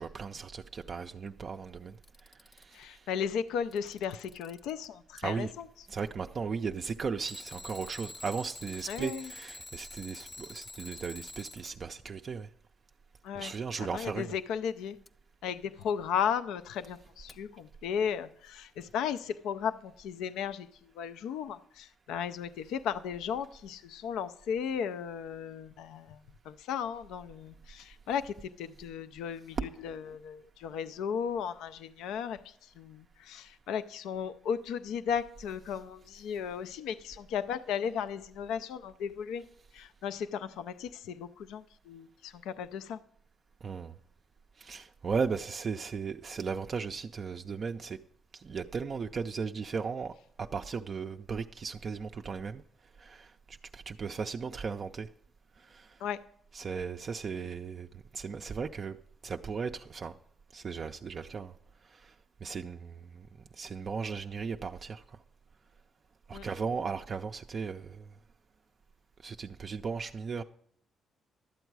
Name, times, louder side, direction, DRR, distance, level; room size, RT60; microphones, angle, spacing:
voice 1, 0.0-3.1 5.2-5.5 5.9-12.5 13.4-14.3 29.5-30.0 35.7-35.8 43.6-43.9 44.6-48.0 48.3-52.6 53.0-55.1 55.6-56.0 56.5-59.0 59.2-60.1 60.5-61.5 61.8-62.1 62.4-63.3 63.5-65.2 66.3-68.1 69.2-70.4, right 5 dB, 45° right, 0.4 m, -36 dB
Alarm, 1.9-2.8 3.5-4.9 7.2-11.7 15.0-15.1 17.3-17.4, left 2 dB, 30° left, 0.5 m, -47 dB
voice 2, 2.7-5.7 8.9-9.3 13.2-13.5 13.8-15.0 15.4-26.2 26.4-39.5 39.7-43.0 56.0-56.2 66.3-66.5, left 7 dB, 90° left, 0.3 m, -35 dB
12.0 x 8.0 x 4.6 m
cardioid pair, 90°, 0 cm